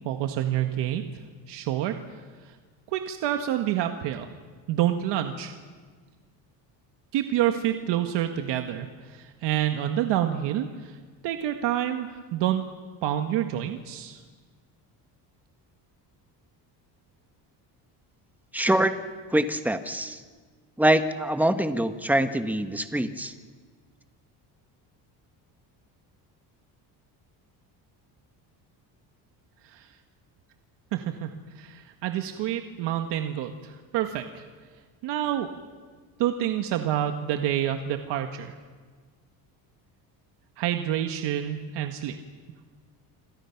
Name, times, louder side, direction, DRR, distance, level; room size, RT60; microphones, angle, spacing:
voice 1, 0.0-1.0 1.5-1.9 2.9-4.3 4.7-5.5 7.1-10.9 11.2-12.6 13.0-14.2 29.6-29.9 30.9-31.3 31.6-34.4 35.0-35.5 36.2-38.5 40.6-42.2, right 11 dB, 80° right, 6 dB, 1.6 m, -28 dB
voice 2, 18.5-18.9 19.3-20.2 20.8-23.3, right 1 dB, 5° right, 8 dB, 1.4 m, -24 dB
27.0 x 26.5 x 5.9 m, 1.5 s
cardioid pair, 125°, 41 cm